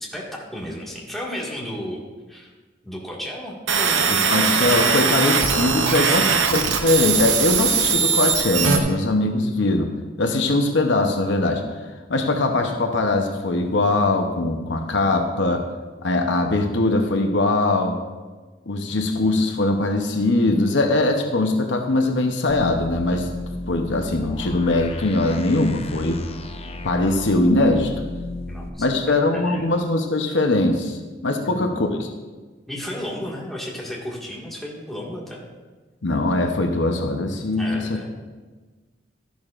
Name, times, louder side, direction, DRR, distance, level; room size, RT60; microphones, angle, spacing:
voice 1, 0.1-2.0 2.3-2.5 2.8-4.1 5.9-6.3 28.5-29.7 31.4-31.8 32.7-35.4 37.6-38.1, left 1 dB, ahead, -4 dB, 1.9 m, -33 dB
sound 1, 3.7-8.8, right 6 dB, 85° right, 1.0 m, -20 dB
voice 2, 4.1-9.9 10.2-11.6 12.1-15.6 16.0-18.0 18.7-23.3 23.7-26.2 26.8-28.1 28.8-32.1 36.0-38.0, left 2 dB, 70° left, 4 dB, 0.8 m, -21 dB
sound 2, 22.5-28.7, left 2 dB, 30° left, 0.6 m, -34 dB
13.0 x 11.0 x 2.5 m, 1.3 s
head